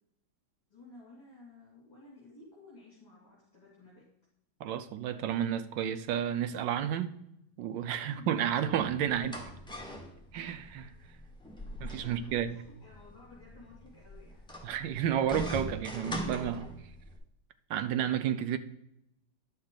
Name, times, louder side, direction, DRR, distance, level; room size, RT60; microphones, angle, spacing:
voice 1, 0.7-4.0 8.1-8.3 8.7-8.8 12.0-14.4, left 2 dB, 20° left, 2.9 m, -54 dB
voice 2, 4.6-7.2 7.6-9.3 10.3-10.9 11.8-12.5 14.6-16.7 17.7-18.6, right 9 dB, 75° right, 1.3 m, -31 dB
sound 1, 8.7-17.2, equal, 5° left, 1.1 m, -42 dB
10.0 x 6.4 x 3.9 m
omnidirectional pair, 2.1 m